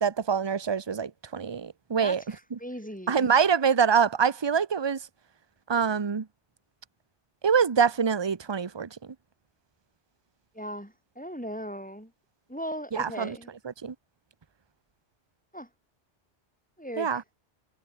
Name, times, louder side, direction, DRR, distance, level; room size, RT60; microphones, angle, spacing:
voice 1, 0.0-2.2 3.1-5.0 5.7-6.2 7.4-8.9 12.9-13.4 13.8-13.9 17.0-17.2, right 6 dB, 25° right, 0.8 m, -25 dB
voice 2, 2.0-3.4 10.5-12.1 12.5-13.5 15.5-15.7 16.8-17.2, equal, 5° left, 4.0 m, -38 dB
omnidirectional pair, 1.2 m